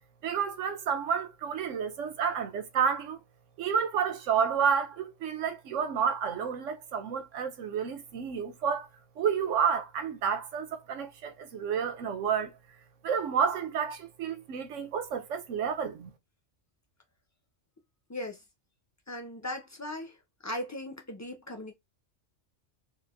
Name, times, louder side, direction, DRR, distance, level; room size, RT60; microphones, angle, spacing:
voice 1, 0.2-3.2 3.6-8.9 9.2-12.5 13.0-16.1, right 7 dB, 80° right, 1.1 m, -30 dB
voice 2, 18.1-18.4 19.1-20.2 20.4-21.7, left 1 dB, 25° left, 0.3 m, -38 dB
4.4 x 2.5 x 2.5 m
omnidirectional pair, 1.3 m